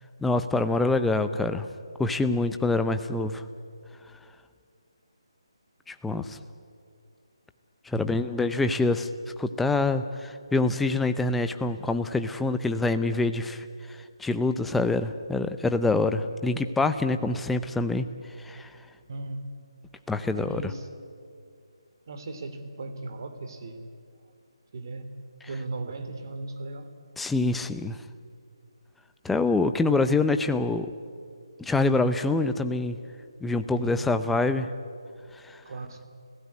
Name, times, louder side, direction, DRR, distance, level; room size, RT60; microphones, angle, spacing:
voice 1, 0.2-1.7 2.0-3.4 5.9-6.4 7.9-9.1 9.4-13.7 14.2-18.1 18.4-18.7 20.1-20.6 27.2-28.0 29.2-30.9 31.6-33.0 33.4-34.7, left 3 dB, 5° left, 9 dB, 0.6 m, -25 dB
voice 2, 7.9-8.3 19.1-19.5 20.3-20.9 22.1-23.9 24.7-25.2 25.5-26.9 33.8-34.1 35.6-36.0, right 2 dB, 45° right, 8 dB, 2.8 m, -37 dB
30.0 x 16.5 x 9.7 m, 2.3 s
hypercardioid pair, 170°, 3 cm